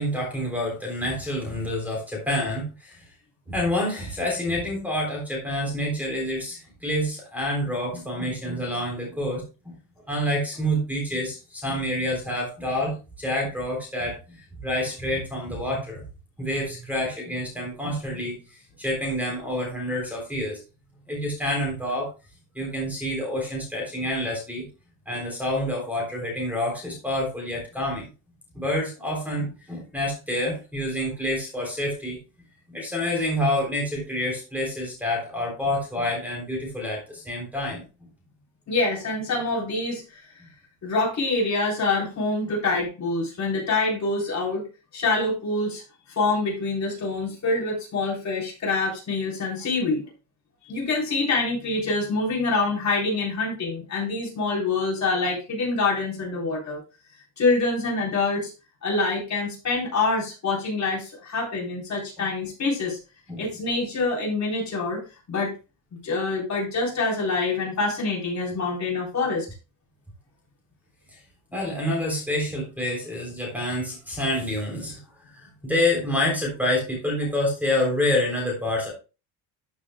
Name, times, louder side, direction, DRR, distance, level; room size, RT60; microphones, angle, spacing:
voice 1, 0.0-3.1 3.5-9.7 10.1-16.0 16.4-20.6 21.1-22.1 22.5-24.7 25.0-28.1 28.5-32.2 32.7-38.1 62.2-62.3 63.3-63.4 71.1-71.2 71.5-75.0 75.3-78.9, left 1 dB, 5° right, 0 dB, 3.4 m, -28 dB
voice 2, 38.7-40.2 40.8-44.7 44.9-45.8 46.2-50.0 50.7-56.8 57.4-58.5 58.8-63.0 63.4-65.0 65.3-65.5 66.0-69.5, left 3 dB, 35° left, -3 dB, 3.9 m, -25 dB
13.0 x 6.4 x 2.3 m, 0.30 s
cardioid pair, 160°, 49 cm